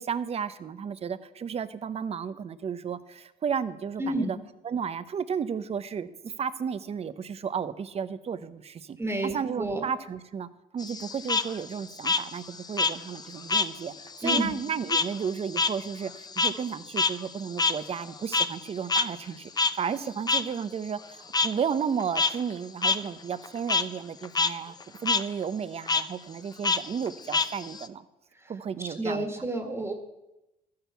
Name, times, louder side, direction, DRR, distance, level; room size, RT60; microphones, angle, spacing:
voice 1, 0.0-4.4 4.6-9.0 9.2-10.5 10.7-28.0 28.5-29.5, right 7 dB, 35° right, 14 dB, 0.9 m, -33 dB
voice 2, 4.0-4.3 9.0-9.8 14.2-14.6 28.8-29.9, right 1 dB, 15° right, 5 dB, 1.9 m, -30 dB
Frog, 10.8-13.7 14.0-18.6 18.9-19.0 19.6-19.7 20.3-20.4 21.3-21.5 22.0-22.3 22.8-23.0 23.3-23.8 24.2-24.5 24.8-25.2 25.9-26.0 26.6-27.9, left 4 dB, 25° left, 0.7 m, -26 dB
13.0 x 10.5 x 7.0 m, 0.95 s
cardioid pair, 110°, 17 cm